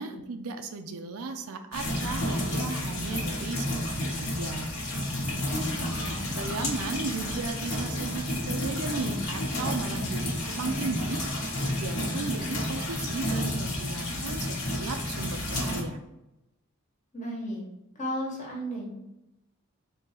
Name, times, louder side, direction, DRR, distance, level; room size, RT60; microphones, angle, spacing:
voice 1, 0.0-4.7 6.1-16.0, right 4 dB, 90° right, 7 dB, 0.5 m, -36 dB
sound 1, 1.7-15.8, left 1 dB, 85° left, 1.2 m, -31 dB
voice 2, 5.4-6.3 17.1-17.6 17.9-18.9, equal, 35° left, -2 dB, 1.1 m, -35 dB
3.8 x 2.8 x 4.2 m, 0.93 s
head